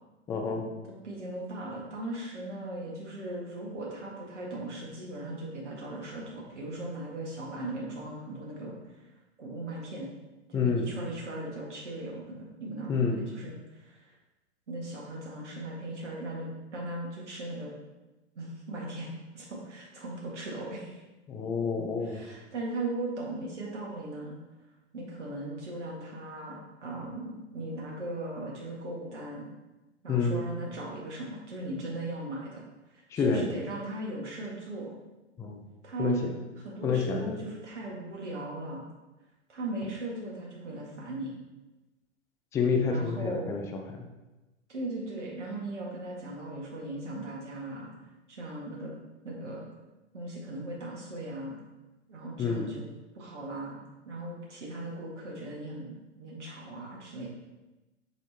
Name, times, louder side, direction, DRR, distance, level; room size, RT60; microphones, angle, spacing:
voice 1, 0.3-0.6 10.5-10.9 12.9-13.2 21.3-22.2 30.1-30.4 33.1-33.4 35.4-35.6 36.0-36.3 36.8-37.3 42.5-44.0 52.4-52.7, left 5 dB, 10° left, 2 dB, 0.4 m, -28 dB
voice 2, 1.0-9.1 9.4-10.1 10.5-14.1 14.7-17.7 18.4-19.1 19.3-21.0 22.0-24.3 24.9-29.5 30.0-32.6 32.9-35.0 35.8-36.2 36.6-38.9 39.5-41.3 42.9-43.5 44.7-47.9 48.3-48.9 49.2-49.7 50.1-51.6 52.1-52.9 53.2-53.8 54.1-57.3, right 2 dB, 75° right, -3 dB, 1.9 m, -38 dB
7.5 x 3.5 x 4.3 m, 1.1 s
hypercardioid pair, 120°, 35 cm